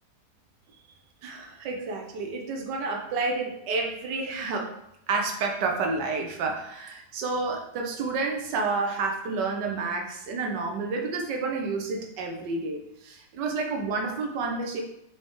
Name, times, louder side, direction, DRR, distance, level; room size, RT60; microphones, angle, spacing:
voice 1, 1.2-4.7 5.1-14.8, right 3 dB, 75° right, 2 dB, 1.7 m, -30 dB
8.1 x 5.0 x 3.7 m, 0.80 s
omnidirectional pair, 1.9 m